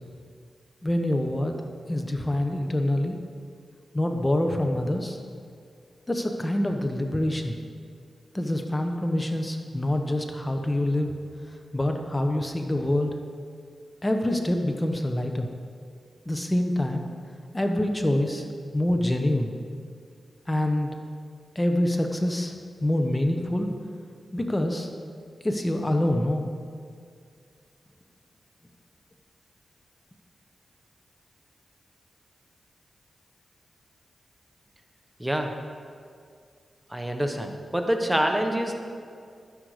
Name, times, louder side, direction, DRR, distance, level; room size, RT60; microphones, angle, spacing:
voice 1, 0.8-1.6 1.9-3.2 3.9-5.2 6.1-7.6 8.3-11.1 11.7-13.1 14.0-15.5 16.3-17.1 17.5-18.5 18.7-19.5 20.5-20.9 21.5-22.5 22.8-23.7 24.3-24.9 25.4-26.5, left 1 dB, 20° left, 4 dB, 1.1 m, -25 dB
voice 2, 35.2-35.5 36.9-38.8, right 1 dB, 10° right, 4 dB, 1.1 m, -26 dB
12.5 x 10.0 x 5.0 m, 2.3 s
cardioid pair, 65°, 0 cm